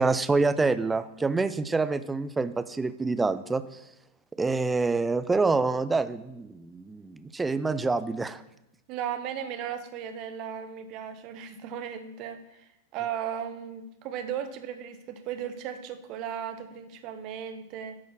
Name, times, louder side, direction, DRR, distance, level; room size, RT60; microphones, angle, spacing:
voice 1, 0.0-3.8 4.4-8.4, right 3 dB, 10° right, 13 dB, 0.4 m, -26 dB
voice 2, 8.9-18.0, right 9 dB, 40° right, 10 dB, 0.9 m, -36 dB
10.5 x 4.2 x 6.2 m, 0.89 s
figure-of-eight pair, 90°, 0 cm